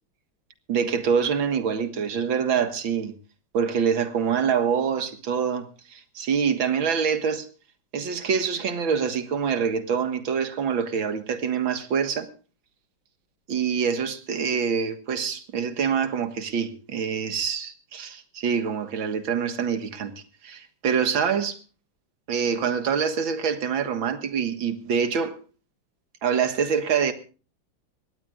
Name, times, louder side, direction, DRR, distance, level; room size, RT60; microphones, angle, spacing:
voice 1, 0.7-3.1 3.5-7.5 7.9-12.3 13.5-20.1 20.4-21.6 22.3-25.4 26.2-27.1, right 6 dB, 80° right, 2.3 m, -25 dB
22.0 x 18.0 x 2.4 m
omnidirectional pair, 2.1 m